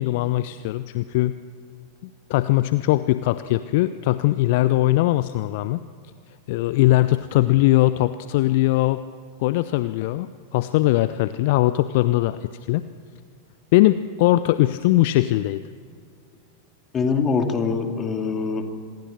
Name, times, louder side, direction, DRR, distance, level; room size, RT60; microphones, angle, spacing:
voice 1, 0.0-1.4 2.0-5.8 6.5-9.0 9.4-10.3 10.5-12.8 13.7-15.6, left 16 dB, 50° left, 14 dB, 0.6 m, -20 dB
voice 2, 16.9-18.6, left 5 dB, 25° left, 5 dB, 2.5 m, -23 dB
25.5 x 21.5 x 6.6 m, 2.2 s
figure-of-eight pair, 90°, 0 cm